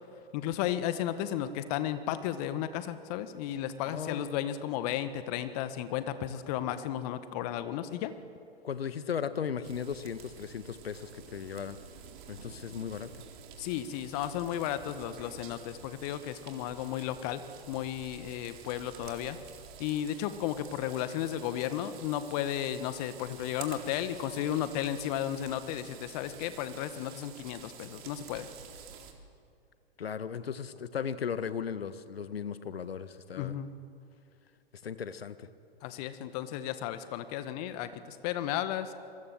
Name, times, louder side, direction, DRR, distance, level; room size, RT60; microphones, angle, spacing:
voice 1, 0.3-8.1 13.6-17.4 17.7-19.4 19.8-28.5 33.3-33.7 35.8-38.9, left 11 dB, 40° left, 11 dB, 1.6 m, -34 dB
voice 2, 3.8-4.3 8.6-11.8 12.3-13.1 30.0-33.5 34.8-35.5, left 7 dB, 70° left, 12 dB, 1.6 m, -36 dB
sound 1, 9.6-29.1, right 7 dB, 50° right, 3.7 m, -50 dB
27.0 x 22.5 x 7.7 m, 2.4 s
figure-of-eight pair, 110°, 31 cm